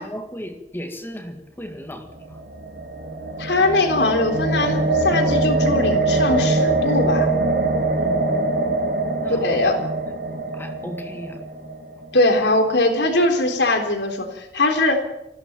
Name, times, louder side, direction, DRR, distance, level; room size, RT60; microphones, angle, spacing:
voice 1, 0.0-2.0 7.9-8.6 9.2-9.4 10.5-11.4, equal, 15° left, 1.9 m, -35 dB
sound 1, 2.1-12.3, right 2 dB, 60° right, 2.3 m, -23 dB
voice 2, 3.4-7.4 9.3-9.8 12.1-15.0, left 2 dB, 75° left, 3.7 m, -21 dB
20.5 x 15.5 x 8.9 m
head